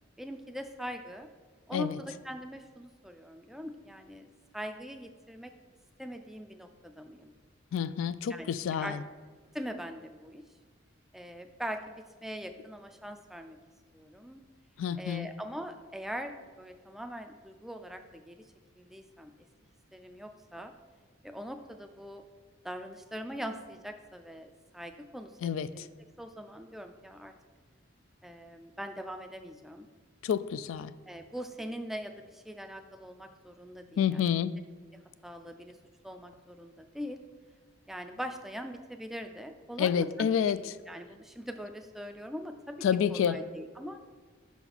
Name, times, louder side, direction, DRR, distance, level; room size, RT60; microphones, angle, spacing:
voice 1, 0.2-1.3 1.7-4.3 4.5-5.5 6.0-7.3 8.3-8.5 8.8-8.9 9.5-10.4 11.1-13.6 13.9-14.4 14.9-18.5 18.8-19.3 19.9-20.7 21.2-22.2 22.6-25.9 26.2-27.3 28.2-29.9 31.1-34.3 34.9-35.8 36.0-37.2 37.9-40.3 40.9-42.8 43.1-44.0, equal, ahead, 6 dB, 0.3 m, -42 dB
voice 2, 7.7-9.0 14.8-15.3 25.4-25.8 30.2-30.9 34.0-34.5 39.8-40.6 42.8-43.4, left 8 dB, 85° left, 15 dB, 0.3 m, -28 dB
5.7 x 4.1 x 5.9 m, 1.5 s
head